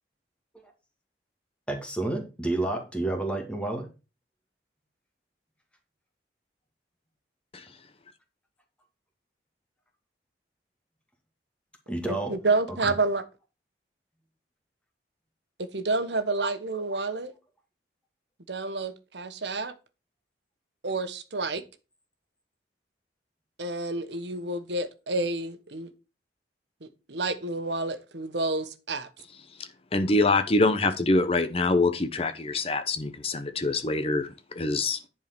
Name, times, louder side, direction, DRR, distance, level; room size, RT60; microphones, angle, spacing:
voice 1, 1.7-3.9 11.9-12.4 12.8-12.9, right 2 dB, 5° left, 2.2 m, -30 dB
voice 2, 12.1-13.2 15.7-17.3 18.5-19.7 20.8-21.6 23.6-25.9 26.8-29.1, right 3 dB, 80° right, 1.2 m, -29 dB
voice 3, 29.9-34.3 34.5-35.0, left 2 dB, 35° left, 0.9 m, -24 dB
10.5 x 4.7 x 6.0 m
head